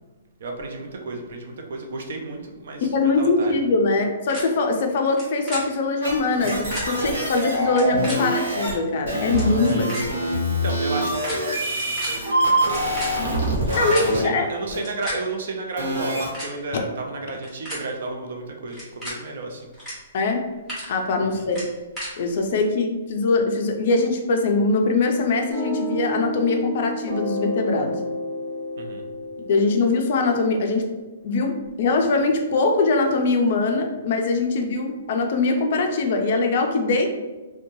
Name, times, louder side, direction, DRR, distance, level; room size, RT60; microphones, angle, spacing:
voice 1, 0.4-2.9 3.2-3.7 9.6-13.1 14.0-19.7 21.3-21.5 28.8-29.0, right 3 dB, 55° right, 2 dB, 0.5 m, -33 dB
voice 2, 2.8-9.9 13.7-14.5 20.1-20.4 20.9-21.6 22.2-27.9 29.5-30.8 31.2-37.1, left 3 dB, 40° left, 4 dB, 0.4 m, -22 dB
sound 1, 4.3-4.4 5.0-5.2 5.5-5.6 6.3-6.8 7.6-8.1 8.9-9.0 9.2-9.5 9.9-10.0 10.9-11.3 11.6-12.1 12.6-14.1 14.7-15.1 16.0-16.5 17.3-17.8 18.7-19.1 19.7-19.9 20.3-20.8 21.5-22.1, equal, ahead, 0.8 m, -34 dB
sound 2, 6.0-8.7 9.1-14.2 14.7-14.8 15.8-16.3, right 1 dB, 80° right, 1.1 m, -25 dB
sound 3, 25.5-31.0, equal, 35° right, 1.0 m, -31 dB
3.0 x 2.2 x 2.6 m, 1.2 s
hypercardioid pair, 175°, 0 cm